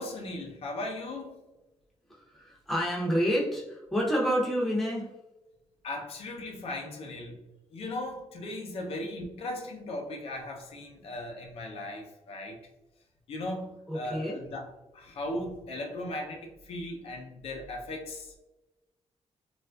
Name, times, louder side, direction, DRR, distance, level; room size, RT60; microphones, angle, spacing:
voice 1, 0.0-1.4 5.8-7.4 7.7-12.6 13.3-18.4, left 1 dB, 65° left, 2 dB, 0.5 m, -37 dB
voice 2, 2.1-5.1 13.9-14.4, equal, ahead, -4 dB, 0.6 m, -29 dB
3.3 x 2.3 x 2.3 m, 0.99 s
wide cardioid pair, 165°, 11 cm